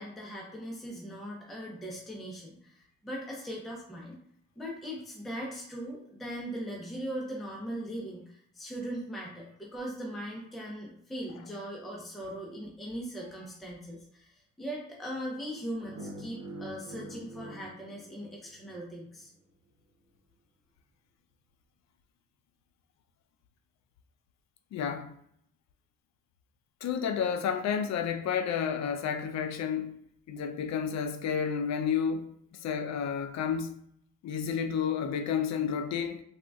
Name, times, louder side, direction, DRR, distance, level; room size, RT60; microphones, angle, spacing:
voice 1, 0.0-4.2 4.6-19.3, equal, ahead, 0.6 m, -39 dB
Fart Attack, 15.8-18.9, right 1 dB, 65° right, 0.9 m, -45 dB
voice 2, 24.7-25.1 26.8-30.0 30.3-33.7 34.2-36.2, left 7 dB, 60° left, 0.5 m, -31 dB
3.7 x 2.4 x 2.3 m
cardioid pair, 90°, 30 cm